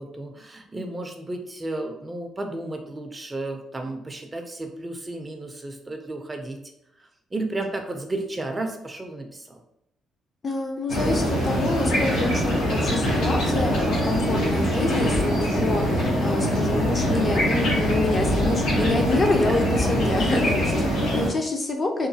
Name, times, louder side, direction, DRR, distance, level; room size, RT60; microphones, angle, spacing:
voice 1, 0.0-6.6 7.3-9.6 19.5-19.6 21.0-21.2, right 2 dB, 20° right, 4 dB, 0.4 m, -33 dB
voice 2, 10.4-20.9 21.1-22.1, left 2 dB, 35° left, 3 dB, 0.5 m, -27 dB
sound 1, 10.9-21.3, equal, 90° left, 0.9 m, -23 dB
3.0 x 2.2 x 2.7 m, 0.78 s
cardioid pair, 90°, 0 cm